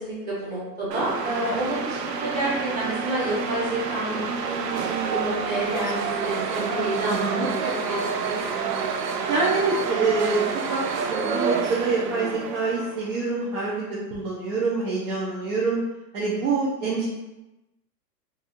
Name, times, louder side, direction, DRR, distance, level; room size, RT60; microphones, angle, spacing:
voice 1, 0.0-4.3 4.7-8.1 8.5-8.8 15.3-15.4, right 1 dB, 20° right, -7 dB, 1.2 m, -29 dB
sound 1, 0.9-13.2, right 5 dB, 75° right, 0.7 m, -28 dB
voice 2, 7.1-7.5 9.3-10.4 10.7-10.8 11.1-15.8 16.1-17.0, right 3 dB, 50° right, -6 dB, 1.0 m, -25 dB
4.7 x 2.6 x 2.6 m, 0.98 s
hypercardioid pair, 145°, 49 cm